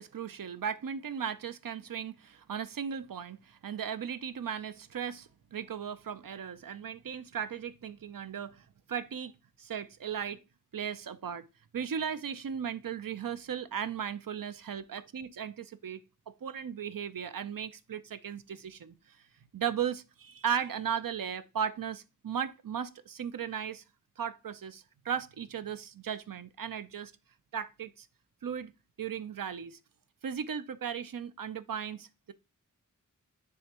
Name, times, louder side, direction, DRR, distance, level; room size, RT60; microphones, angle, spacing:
voice 1, 0.0-9.3 9.6-10.4 10.7-11.5 11.7-16.0 16.4-19.2 19.5-23.8 24.2-27.1 27.5-28.1 28.4-28.7 29.0-29.8 30.2-32.3, right 8 dB, 85° right, 0.5 m, -36 dB
9.6 x 3.5 x 2.9 m
wide cardioid pair, 50°, 33 cm